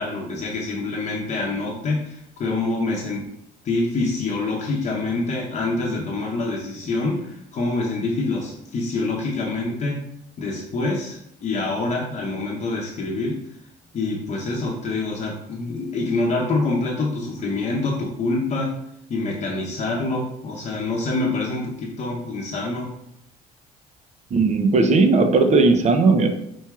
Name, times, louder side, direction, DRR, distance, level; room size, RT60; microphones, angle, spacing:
voice 1, 0.0-3.3 3.6-10.0 10.4-13.4 13.9-18.7 19.1-22.9, left 3 dB, 45° left, -2 dB, 0.8 m, -26 dB
voice 2, 24.3-26.3, right 3 dB, 45° right, 7 dB, 0.6 m, -17 dB
4.5 x 4.4 x 2.3 m, 0.76 s
cardioid pair, 110°, 17 cm